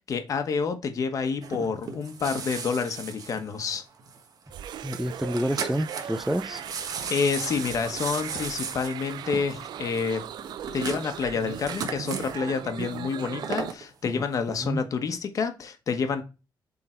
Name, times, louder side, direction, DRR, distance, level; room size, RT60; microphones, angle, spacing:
voice 1, 0.0-3.8 7.1-10.2 10.7-16.2, left 5 dB, 50° left, 1.2 m, -28 dB
sound 1, 1.4-4.2 4.5-4.6 4.9-5.0 5.2-6.3 6.6-12.4 13.1-13.8 14.3-14.4, right 5 dB, 55° right, 1.3 m, -35 dB
sound 2, 4.5-13.7, right 10 dB, 85° right, 0.5 m, -39 dB
voice 2, 4.8-6.6 14.1-14.2 14.6-14.8, equal, 5° right, 0.4 m, -29 dB
7.7 x 3.9 x 4.4 m
wide cardioid pair, 150°, 7 cm